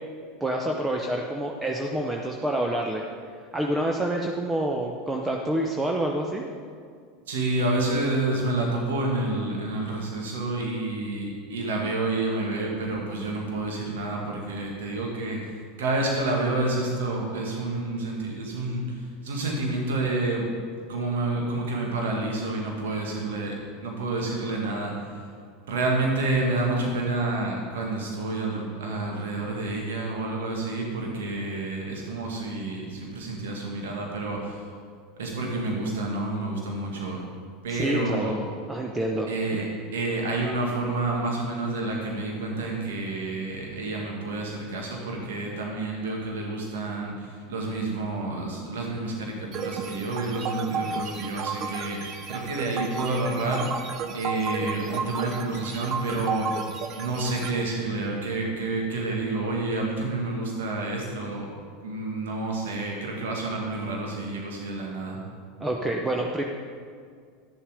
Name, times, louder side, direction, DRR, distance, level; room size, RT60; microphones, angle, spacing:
voice 1, 0.4-3.1 3.5-6.6 37.7-38.4 38.7-39.3 65.6-66.4, right 1 dB, 15° right, 1 dB, 0.9 m, -27 dB
voice 2, 7.3-15.5 15.8-20.5 20.9-24.9 25.7-34.7 35.2-37.3 37.6-38.4 39.3-53.7 54.1-56.7 57.0-65.2, right 2 dB, 75° right, -1 dB, 1.9 m, -29 dB
sound 1, 49.5-57.5, right 5 dB, 40° right, 0.9 m, -33 dB
11.0 x 7.1 x 5.1 m, 2.1 s
hypercardioid pair, 90°, 0 cm